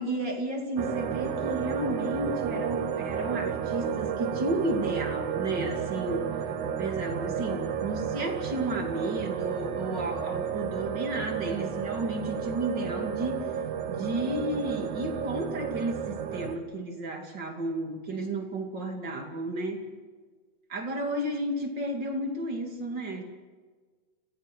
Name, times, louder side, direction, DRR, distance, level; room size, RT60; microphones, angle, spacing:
voice 1, 0.0-13.5 13.9-19.9 20.7-23.2, right 1 dB, 35° right, 2 dB, 2.9 m, -32 dB
sound 1, 0.8-16.6, right 7 dB, 65° right, 2.5 m, -32 dB
30.0 x 16.0 x 6.3 m, 1.4 s
omnidirectional pair, 4.0 m